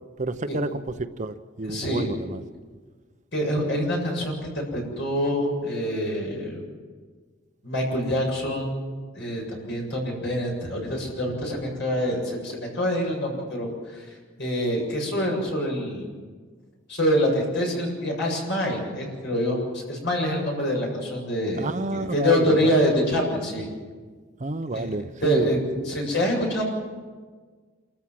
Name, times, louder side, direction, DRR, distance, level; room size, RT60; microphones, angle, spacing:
voice 1, 0.2-0.7 1.2-2.4 21.6-22.7 24.4-25.5, right 2 dB, 35° right, 10 dB, 0.7 m, -29 dB
voice 2, 1.6-2.1 3.3-6.6 7.6-8.9 9.1-14.1 14.4-16.1 16.9-23.7 24.7-24.9 25.2-26.6, equal, 60° left, -1 dB, 7.4 m, -26 dB
27.5 x 14.5 x 7.6 m, 1.5 s
head